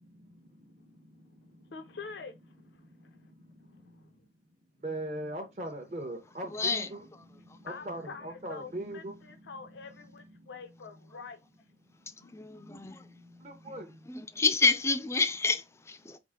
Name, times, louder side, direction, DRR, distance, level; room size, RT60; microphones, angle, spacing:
voice 1, 1.6-4.2 7.5-11.4 12.2-12.4, left 5 dB, 75° left, 0.6 m, -47 dB
voice 2, 4.8-7.1 7.8-9.2 13.4-13.9, right 1 dB, 40° right, 0.8 m, -38 dB
voice 3, 6.5-6.9 12.3-13.1 14.1-16.2, left 4 dB, 15° left, 0.4 m, -28 dB
4.8 x 2.5 x 3.6 m
head